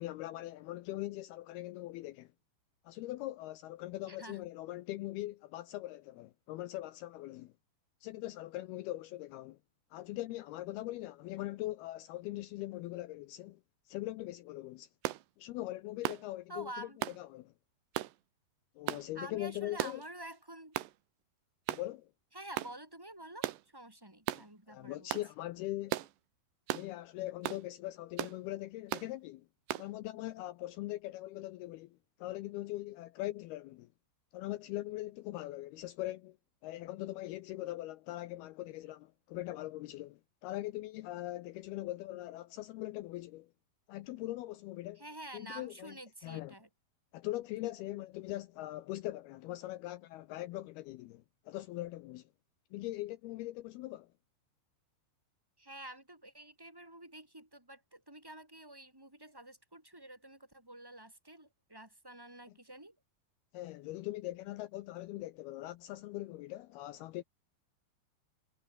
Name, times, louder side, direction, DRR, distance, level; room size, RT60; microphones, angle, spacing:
voice 1, 0.0-2.3 2.9-7.5 8.0-9.6 9.9-13.6 13.9-14.9 15.4-16.9 17.2-17.5 18.8-20.0 21.7-22.1 24.3-26.0 26.7-29.5 29.8-33.9 34.3-36.4 36.6-43.5 43.9-45.0 45.3-46.0 46.2-46.6 47.1-52.3 52.7-54.1 63.5-67.2, left 16 dB, 85° left, 2.2 m, -41 dB
voice 2, 4.1-4.5 16.5-17.0 19.2-20.7 22.3-25.2 45.0-46.7 55.6-63.0, right 1 dB, 5° right, 3.6 m, -49 dB
sound 1, 15.0-15.2 16.0-16.3 17.0-17.2 18.0-18.1 18.9-19.1 19.8-20.1 20.8-20.9 21.7-21.9 22.6-22.8 23.4-23.6 24.3-24.5 25.1-25.3 25.9-26.1 26.7-26.9 27.4-27.6 28.2-28.4 28.9-29.1 29.7-29.9, right 15 dB, 75° right, 3.2 m, -36 dB
omnidirectional pair, 5.4 m